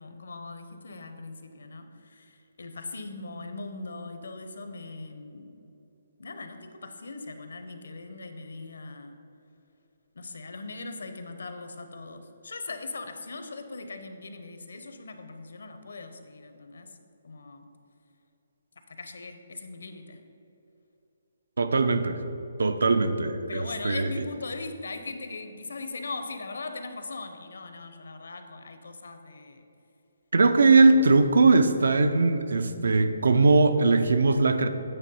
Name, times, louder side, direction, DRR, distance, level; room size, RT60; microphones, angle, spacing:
voice 1, 0.0-5.5 6.2-9.2 10.2-16.9 17.2-17.7 18.9-20.2 23.5-29.6, left 3 dB, 80° left, 7 dB, 0.7 m, -40 dB
voice 2, 21.6-22.2 22.6-24.1 30.3-34.7, right 3 dB, 80° right, 10 dB, 0.5 m, -20 dB
9.0 x 3.4 x 5.5 m, 2.9 s
hypercardioid pair, 175°, 0 cm